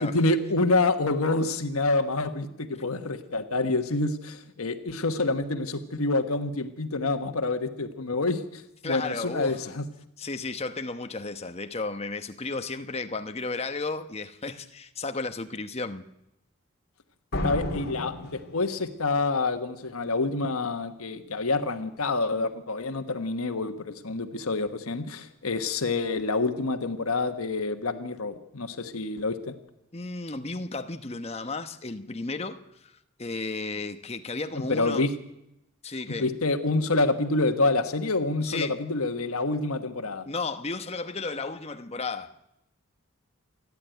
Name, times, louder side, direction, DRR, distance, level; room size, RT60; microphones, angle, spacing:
voice 1, 0.0-9.9 17.4-29.5 34.7-35.1 36.1-40.3, left 3 dB, 85° left, 1.4 m, -27 dB
voice 2, 8.8-9.7 10.2-16.1 29.9-32.9 33.2-35.0 35.8-36.3 38.4-38.8 40.2-42.3, left 3 dB, 30° left, 1.0 m, -34 dB
sound 1, 17.3-19.1, left 1 dB, 45° left, 2.7 m, -32 dB
28.0 x 11.0 x 9.2 m
head